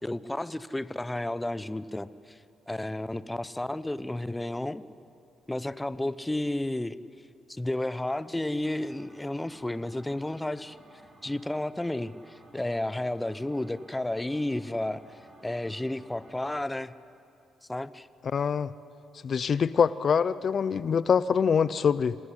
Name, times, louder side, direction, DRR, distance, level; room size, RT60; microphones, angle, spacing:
voice 1, 0.0-2.4 2.7-4.8 5.5-7.0 7.5-10.8 11.2-16.9 17.7-18.1, left 1 dB, 10° left, 15 dB, 0.8 m, -32 dB
sound 1, 8.6-16.6, right 2 dB, 40° right, 6.0 m, -56 dB
voice 2, 18.3-18.7 19.2-22.2, left 6 dB, 50° left, 17 dB, 0.6 m, -24 dB
26.5 x 18.0 x 9.9 m, 2.5 s
cardioid pair, 90°, 0 cm